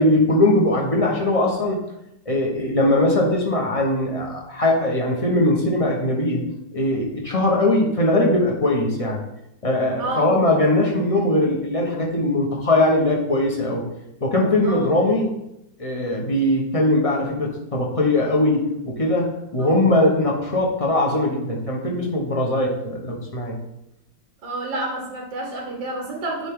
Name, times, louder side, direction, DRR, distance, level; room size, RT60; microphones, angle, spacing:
voice 1, 0.0-1.8 2.3-6.4 6.7-9.2 9.6-13.9 14.2-15.3 15.8-23.6, left 1 dB, 25° left, -2 dB, 0.9 m, -20 dB
voice 2, 10.0-10.4 14.6-14.9 19.6-19.8 24.4-26.5, right 2 dB, 90° right, -1 dB, 2.0 m, -29 dB
10.0 x 3.5 x 3.7 m, 0.85 s
omnidirectional pair, 2.0 m